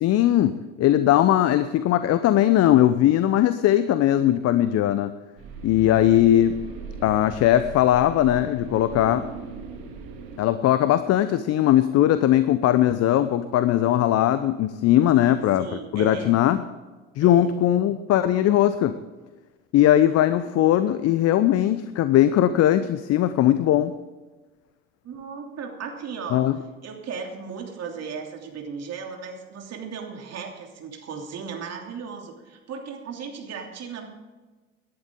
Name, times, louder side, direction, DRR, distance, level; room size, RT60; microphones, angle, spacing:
voice 1, 0.0-5.1 5.6-6.5 7.0-9.3 10.4-15.7 15.9-16.6 17.2-18.9 19.7-23.9 26.3-26.5, left 12 dB, 40° left, 13 dB, 0.7 m, -19 dB
sound 1, 5.4-10.4, right 5 dB, 60° right, 2.7 m, -38 dB
voice 2, 5.8-6.2 15.1-16.4 17.2-17.5 25.0-26.5 26.8-34.1, right 6 dB, 40° right, 2 dB, 3.0 m, -36 dB
18.0 x 11.0 x 3.8 m, 1.3 s
hypercardioid pair, 70°, 39 cm